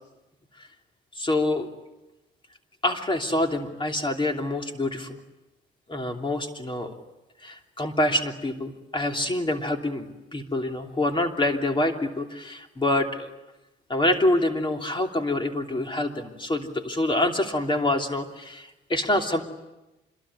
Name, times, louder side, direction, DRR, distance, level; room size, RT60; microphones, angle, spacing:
voice 1, 1.1-1.7 2.8-5.2 5.9-6.9 7.4-13.3 13.9-19.4, left 1 dB, 25° left, 4 dB, 3.0 m, -26 dB
26.5 x 22.0 x 9.9 m, 1.0 s
cardioid pair, 90°, 20 cm